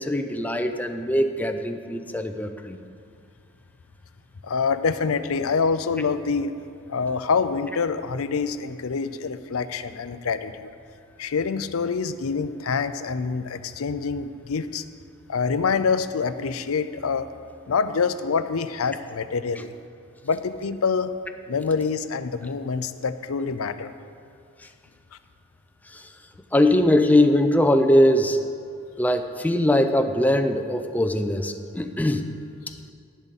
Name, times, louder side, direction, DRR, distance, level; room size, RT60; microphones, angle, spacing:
voice 1, 0.0-2.8 25.9-26.0 26.5-28.4 29.0-32.3, left 1 dB, 10° left, 7 dB, 0.5 m, -21 dB
voice 2, 4.4-6.6 6.9-10.7 11.2-14.8 15.3-17.3 17.7-19.7 20.2-21.2 21.5-23.9, left 5 dB, 85° left, 12 dB, 0.5 m, -26 dB
11.5 x 10.5 x 4.1 m, 2.4 s
head